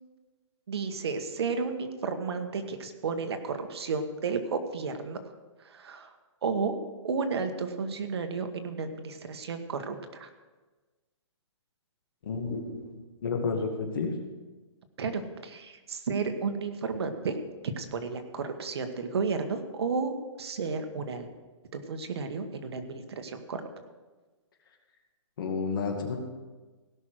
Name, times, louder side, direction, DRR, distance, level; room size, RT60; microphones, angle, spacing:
voice 1, 0.7-5.2 5.6-6.1 6.4-10.3 15.0-17.4 17.8-21.3 21.7-23.6, right 4 dB, 55° right, 7 dB, 1.3 m, -32 dB
voice 2, 12.2-12.9 13.2-14.1 25.4-26.2, left 4 dB, 45° left, 3 dB, 2.1 m, -31 dB
17.0 x 6.2 x 6.4 m, 1.3 s
hypercardioid pair, 170°, 16 cm